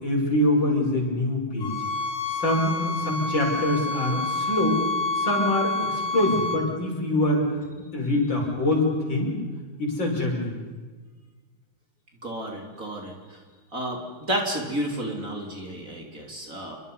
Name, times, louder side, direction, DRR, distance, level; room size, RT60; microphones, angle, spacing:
voice 1, 0.0-1.7 2.3-4.8 5.1-7.4 7.9-9.4 9.8-10.5, left 1 dB, 55° left, -1 dB, 6.3 m, -24 dB
sound 1, 1.6-6.6, left 3 dB, 75° left, 2.7 m, -28 dB
voice 2, 12.2-13.4 13.7-16.8, right 1 dB, 35° right, 0 dB, 3.7 m, -31 dB
28.5 x 24.0 x 5.6 m, 1.4 s
omnidirectional pair, 2.4 m